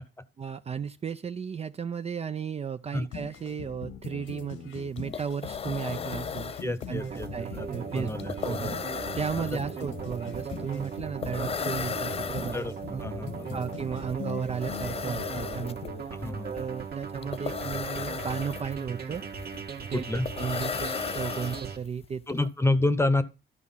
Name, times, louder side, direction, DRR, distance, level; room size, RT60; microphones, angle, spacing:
voice 1, 0.4-8.1 8.4-8.8 9.1-12.6 12.9-13.0 13.5-15.8 16.4-19.2 19.8-22.5, right 7 dB, 30° right, 0.5 m, -34 dB
sound 1, 3.1-16.0, left 6 dB, 80° left, 1.6 m, -42 dB
sound 2, 4.7-4.8 5.0-22.1, left 6 dB, 30° left, 0.5 m, -36 dB
voice 2, 6.6-7.3 7.5-7.7 7.9-8.8 9.8-9.9 12.5-12.7 13.0-13.6 16.1-16.5 19.9-20.3 22.3-23.2, left 2 dB, 15° left, 0.9 m, -28 dB
sound 3, 7.0-21.8, right 6 dB, 50° right, 1.6 m, -38 dB
12.5 x 4.8 x 5.7 m
cardioid pair, 90°, 20 cm